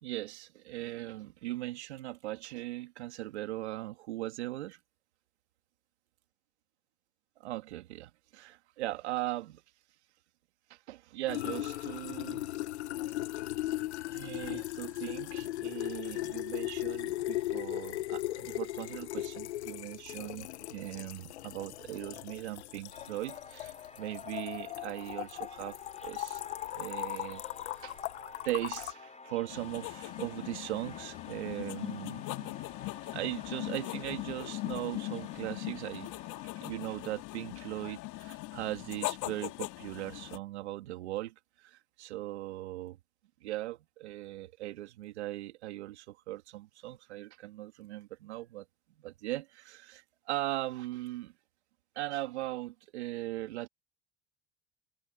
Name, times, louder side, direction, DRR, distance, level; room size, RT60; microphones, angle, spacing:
voice 1, 0.0-4.8 7.4-9.6 10.7-12.4 14.1-26.4 26.7-27.4 27.7-28.0 28.4-32.6 33.1-36.1 36.6-43.0 43.4-51.3 51.9-53.7, right 16 dB, 85° right, 2.8 m, -39 dB
sound 1, 11.3-28.9, left 15 dB, 90° left, 1.0 m, -38 dB
sound 2, 22.9-36.5, left 3 dB, 20° left, 6.9 m, -51 dB
sound 3, 29.5-40.4, left 21 dB, 65° left, 2.8 m, -40 dB
hypercardioid pair, 75°, 33 cm